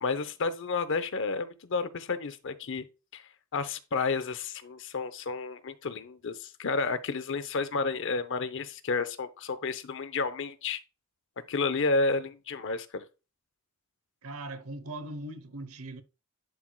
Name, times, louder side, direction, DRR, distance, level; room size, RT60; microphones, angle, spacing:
voice 1, 0.0-2.8 3.1-3.2 3.5-10.8 11.5-13.0, left 4 dB, 60° left, 0.7 m, -31 dB
voice 2, 14.2-16.0, right 2 dB, 75° right, 0.8 m, -40 dB
11.0 x 4.6 x 2.2 m
head